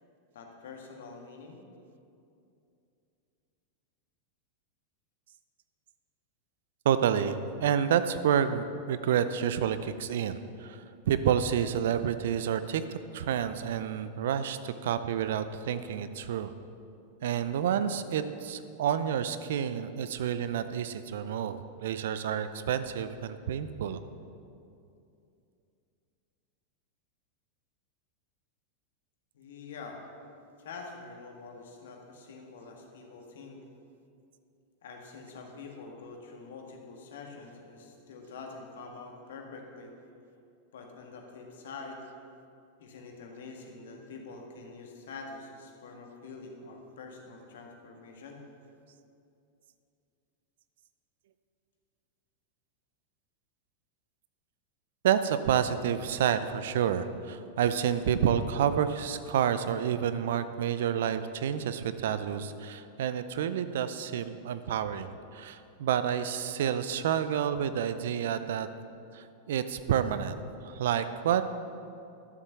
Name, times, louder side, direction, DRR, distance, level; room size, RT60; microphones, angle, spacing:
voice 1, 0.3-1.6 29.3-30.0 30.6-33.6 34.8-39.9 40.7-42.0 42.8-48.4, left 4 dB, 65° left, 2 dB, 1.9 m, -46 dB
voice 2, 6.8-12.8 13.1-16.5 17.2-24.0 55.0-68.7 69.1-71.4, right 9 dB, 65° right, 12 dB, 0.6 m, -29 dB
12.5 x 7.4 x 6.9 m, 2.6 s
figure-of-eight pair, 90°, 0 cm